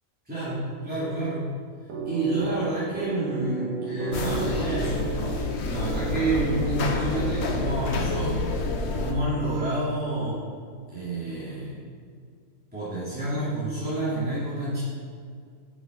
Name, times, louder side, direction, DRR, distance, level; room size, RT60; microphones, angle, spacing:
voice 1, 0.3-1.5 2.0-5.1 5.6-8.4 8.8-10.4 10.9-11.8 12.7-14.8, right 2 dB, 5° right, -12 dB, 2.7 m, -29 dB
sound 1, 1.9-7.9, right 3 dB, 90° right, 1.6 m, -33 dB
sound 2, 4.1-9.1, left 3 dB, 55° left, 1.1 m, -29 dB
10.0 x 6.2 x 5.3 m, 2.1 s
omnidirectional pair, 1.4 m